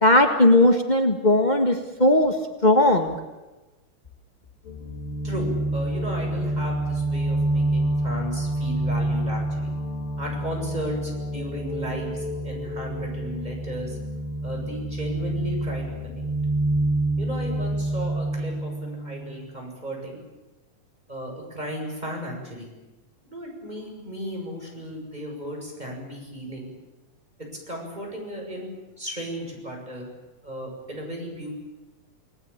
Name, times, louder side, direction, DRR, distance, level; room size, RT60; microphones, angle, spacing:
voice 1, 0.0-2.3 2.6-3.1, left 1 dB, 60° left, 5 dB, 0.4 m, -18 dB
sound 1, 4.7-19.3, right 1 dB, 80° left, 8.1 m, -27 dB
voice 2, 5.2-9.7 10.2-14.0 14.4-16.2 17.2-20.2 21.1-22.7 23.2-26.7 27.7-28.7 29.0-30.1 30.4-31.5, equal, 10° right, 0 dB, 7.9 m, -35 dB
28.5 x 19.0 x 9.0 m, 1.1 s
omnidirectional pair, 3.9 m